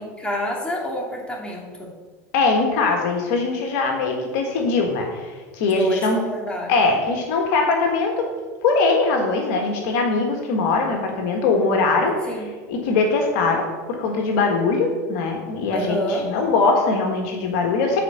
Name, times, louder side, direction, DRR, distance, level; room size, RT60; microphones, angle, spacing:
voice 1, 0.0-1.9 5.8-6.8 12.3-12.5 15.7-16.3, equal, 10° left, -2 dB, 2.6 m, -28 dB
voice 2, 2.3-6.2 6.7-8.2 8.6-12.1 12.7-13.6 14.0-18.0, left 3 dB, 70° left, 2 dB, 1.5 m, -21 dB
8.5 x 4.5 x 6.6 m, 1.5 s
hypercardioid pair, 95°, 9 cm